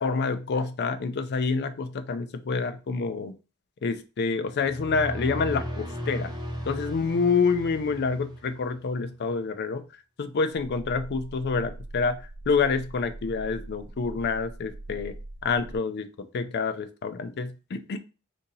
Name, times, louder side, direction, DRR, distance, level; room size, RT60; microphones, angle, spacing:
voice 1, 0.0-3.3 3.8-6.3 6.7-9.8 10.2-15.2 15.4-18.0, left 4 dB, 50° left, 9 dB, 0.4 m, -27 dB
sound 1, 4.5-8.8, equal, 20° right, 0.7 m, -36 dB
sound 2, 10.5-15.8, right 1 dB, 60° right, 0.5 m, -42 dB
2.7 x 2.6 x 3.8 m, 0.32 s
head